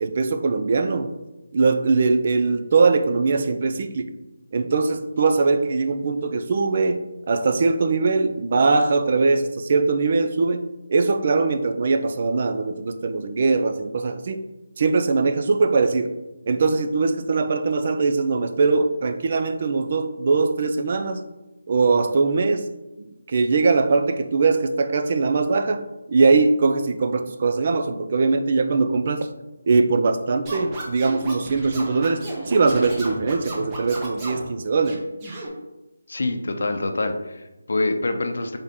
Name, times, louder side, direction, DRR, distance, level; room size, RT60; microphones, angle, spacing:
voice 1, 0.0-1.1 1.5-4.1 4.5-14.4 14.8-16.2 16.5-21.2 21.7-22.7 23.0-29.3 29.7-35.0, right 4 dB, 40° right, 8 dB, 0.3 m, -21 dB
Scratching (performance technique), 30.5-34.5 34.8-35.5, right 2 dB, 20° right, 0.8 m, -34 dB
voice 2, 36.1-38.6, left 2 dB, 65° left, 6 dB, 0.6 m, -25 dB
4.1 x 3.5 x 3.5 m, 1.0 s
figure-of-eight pair, 165°, 0 cm